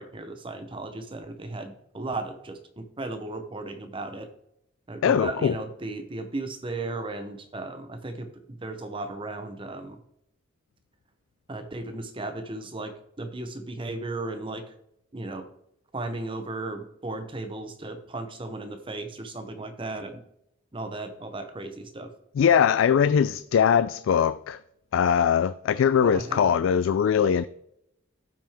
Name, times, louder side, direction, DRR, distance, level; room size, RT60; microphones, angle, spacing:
voice 1, 0.0-4.3 4.9-10.0 11.5-14.7 15.1-15.5 15.9-20.2 20.7-22.1 26.0-26.5, right 2 dB, 25° right, 0.8 m, -35 dB
voice 2, 5.0-5.5 22.4-24.6 24.9-27.5, left 7 dB, 75° left, 0.3 m, -21 dB
13.0 x 5.9 x 3.5 m
head